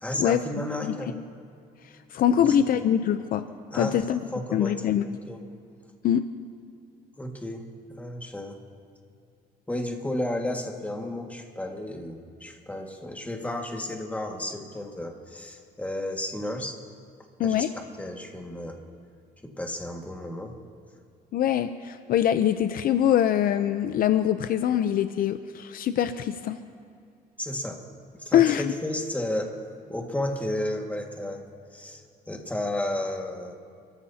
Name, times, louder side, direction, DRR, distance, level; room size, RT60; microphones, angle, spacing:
voice 1, 0.0-1.1 2.3-2.5 2.7-2.8 3.7-4.0 4.3-4.9 5.3-5.4 7.2-7.6 8.0-8.6 9.7-16.8 17.4-18.8 19.4-20.5 27.4-27.8 28.1-29.5 29.9-31.4 31.7-32.0 32.3-33.5, left 1 dB, 10° left, 2 dB, 1.8 m, -32 dB
voice 2, 2.1-3.4 3.7-4.2 4.5-5.1 6.0-6.2 17.4-17.7 21.3-26.6 28.3-28.7, left 10 dB, 60° left, 10 dB, 0.6 m, -23 dB
29.5 x 14.0 x 2.8 m, 2.4 s
cardioid pair, 110°, 17 cm